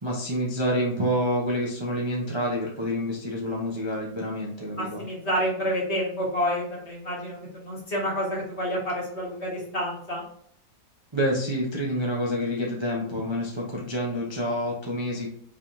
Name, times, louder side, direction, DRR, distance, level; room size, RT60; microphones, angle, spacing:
voice 1, 0.0-5.0 11.1-15.3, equal, 20° right, -4 dB, 0.8 m, -28 dB
voice 2, 4.8-10.2, equal, 40° left, -4 dB, 2.0 m, -29 dB
5.3 x 3.6 x 2.6 m, 0.64 s
omnidirectional pair, 1.7 m